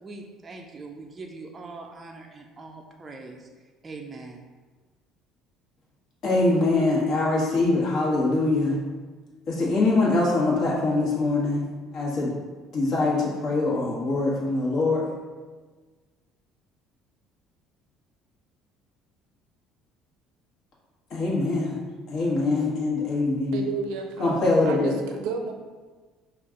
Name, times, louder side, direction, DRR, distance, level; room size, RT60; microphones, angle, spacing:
voice 1, 0.0-3.5 3.8-4.4, right 3 dB, 20° right, 1 dB, 0.4 m, -42 dB
voice 2, 6.2-8.8 9.5-11.6 11.9-12.3 12.7-15.0 21.1-21.8 22.1-23.7 24.2-24.9, left 2 dB, 55° left, -5 dB, 1.4 m, -23 dB
voice 3, 23.5-25.5, right 5 dB, 85° right, 4 dB, 0.5 m, -32 dB
5.1 x 2.4 x 3.7 m, 1.4 s
cardioid pair, 120°, 0 cm